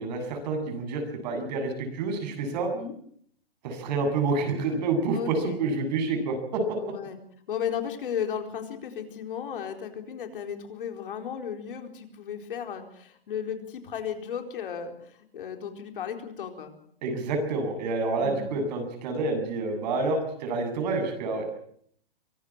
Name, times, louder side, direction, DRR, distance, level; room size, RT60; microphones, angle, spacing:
voice 1, 0.0-2.7 3.6-6.8 17.0-21.5, right 3 dB, 45° right, 6 dB, 8.0 m, -28 dB
voice 2, 5.1-5.6 6.8-7.2 7.5-16.7 18.2-18.5, left 8 dB, 60° left, 5 dB, 4.3 m, -35 dB
24.5 x 18.0 x 7.4 m, 0.64 s
hypercardioid pair, 145°, 29 cm